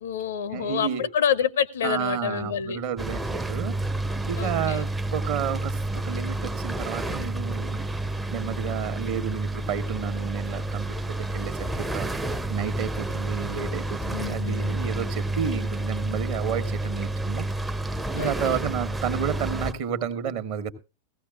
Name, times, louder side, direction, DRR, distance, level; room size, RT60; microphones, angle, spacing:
voice 1, 0.0-2.8 4.4-4.8 14.1-14.8 18.2-18.6, left 8 dB, 60° left, 0.5 m, -28 dB
voice 2, 0.5-1.1 1.8-3.8 4.2-7.9 8.3-17.5 18.1-20.7, right 8 dB, 50° right, 1.2 m, -31 dB
sound 1, 3.0-19.7, right 1 dB, 10° right, 0.5 m, -30 dB
17.0 x 15.0 x 2.4 m
figure-of-eight pair, 90°, 0 cm